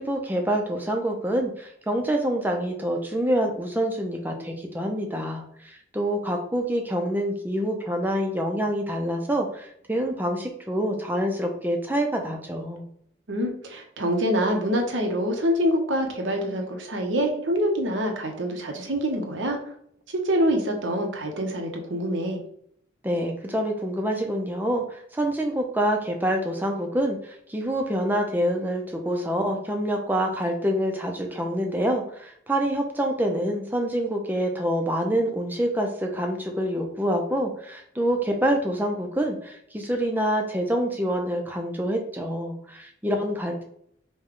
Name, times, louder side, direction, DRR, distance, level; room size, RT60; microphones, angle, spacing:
voice 1, 0.0-5.4 5.9-12.8 23.0-27.2 27.5-43.6, equal, 10° right, 2 dB, 0.6 m, -26 dB
voice 2, 13.3-19.6 20.1-22.4, equal, 90° right, 2 dB, 0.9 m, -25 dB
5.2 x 2.3 x 3.7 m, 0.68 s
head